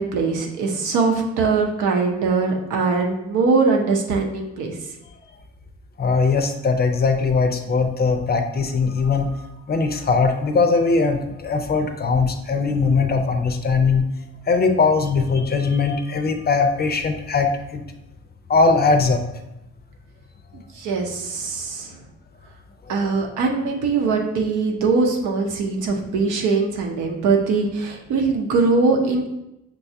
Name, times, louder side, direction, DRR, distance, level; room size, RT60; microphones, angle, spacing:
voice 1, 0.0-4.7 20.5-22.0 22.9-29.3, right 4 dB, 90° right, 1 dB, 0.8 m, -21 dB
voice 2, 6.0-9.4 9.7-14.0 14.5-17.8 18.5-19.2, left 4 dB, 35° left, 6 dB, 0.5 m, -20 dB
6.0 x 2.3 x 2.6 m, 0.88 s
cardioid pair, 90°, 30 cm